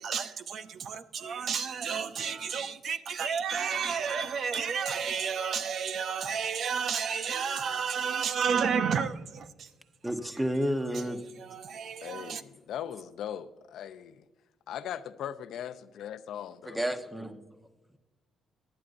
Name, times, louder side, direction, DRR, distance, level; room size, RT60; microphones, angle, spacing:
voice 1, 0.0-9.7 10.9-11.0 11.4-12.4, right 6 dB, 60° right, 0.7 m, -31 dB
voice 2, 10.0-11.2 16.7-17.4, equal, 5° right, 1.1 m, -30 dB
voice 3, 12.0-14.3 14.7-16.8, left 10 dB, 75° left, 0.6 m, -39 dB
19.0 x 11.0 x 2.6 m
cardioid pair, 90°, 0 cm